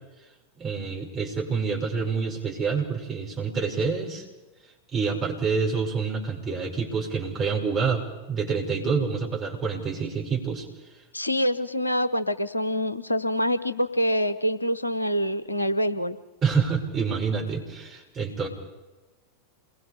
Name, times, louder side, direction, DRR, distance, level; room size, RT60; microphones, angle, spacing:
voice 1, 0.6-4.3 4.9-10.7 16.4-18.5, right 5 dB, 25° right, -1 dB, 5.9 m, -27 dB
voice 2, 11.1-16.2, equal, 85° left, 12 dB, 1.0 m, -25 dB
28.0 x 21.5 x 5.1 m, 1.1 s
figure-of-eight pair, 90°, 0 cm